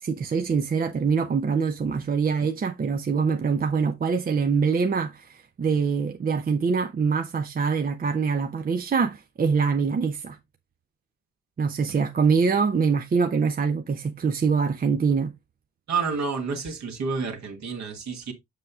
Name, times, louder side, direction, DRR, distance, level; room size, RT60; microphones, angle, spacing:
voice 1, 0.0-10.4 11.6-15.3, right 5 dB, 25° right, 0.7 m, -24 dB
voice 2, 15.9-18.3, right 5 dB, 50° right, 1.8 m, -29 dB
7.5 x 6.6 x 2.4 m
figure-of-eight pair, 45°, 35 cm